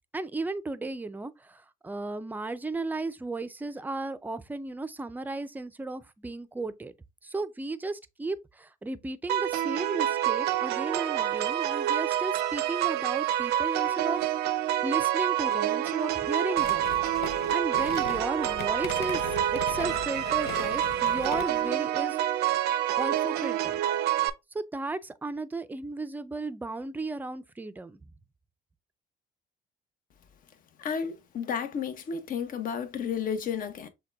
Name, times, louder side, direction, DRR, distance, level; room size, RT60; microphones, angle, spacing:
voice 1, 0.1-6.9 7.2-14.2 14.8-16.8 17.5-19.2 19.5-22.2 23.0-23.8 24.5-28.0, right 3 dB, 10° right, 0.5 m, -34 dB
sound 1, 9.3-24.3, right 12 dB, 80° right, 0.6 m, -27 dB
sound 2, 16.5-21.7, left 10 dB, 80° left, 0.6 m, -39 dB
voice 2, 30.8-33.9, left 7 dB, 55° left, 0.9 m, -32 dB
6.5 x 2.3 x 3.4 m
cardioid pair, 110°, 17 cm